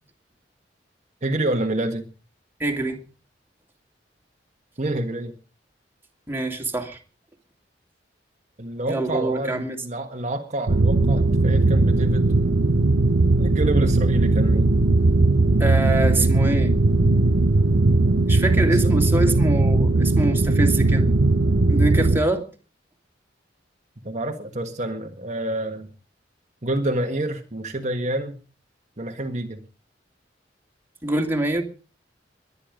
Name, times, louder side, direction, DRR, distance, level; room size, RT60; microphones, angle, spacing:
voice 1, 1.2-2.1 4.8-5.3 8.6-12.3 13.4-14.7 18.8-18.9 24.0-25.9 26.6-28.4 29.0-29.6, right 1 dB, 40° right, 4 dB, 1.5 m, -28 dB
voice 2, 2.6-3.0 6.3-7.0 8.9-9.8 15.6-16.7 18.3-21.1 21.7-22.4 31.0-31.6, right 2 dB, 10° right, 2 dB, 2.6 m, -24 dB
sound 1, 10.7-22.2, right 2 dB, 80° right, 0.9 m, -18 dB
22.0 x 9.9 x 5.1 m, 0.37 s
head